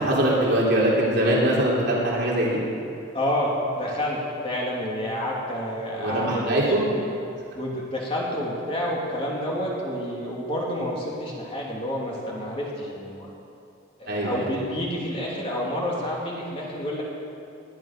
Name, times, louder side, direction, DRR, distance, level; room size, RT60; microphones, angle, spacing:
voice 1, 0.0-2.6 6.0-6.8 14.1-14.4, right 1 dB, 55° right, -5 dB, 3.2 m, -22 dB
voice 2, 3.1-7.0 7.5-13.3 14.0-17.0, equal, 25° left, -4 dB, 2.8 m, -29 dB
20.0 x 10.5 x 6.0 m, 2.6 s
head